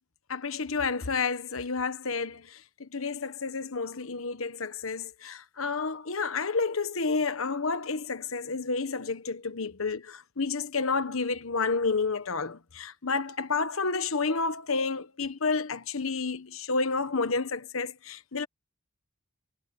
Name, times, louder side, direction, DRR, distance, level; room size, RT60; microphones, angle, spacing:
voice 1, 0.3-18.5, left 4 dB, 75° left, 1.3 m, -30 dB
head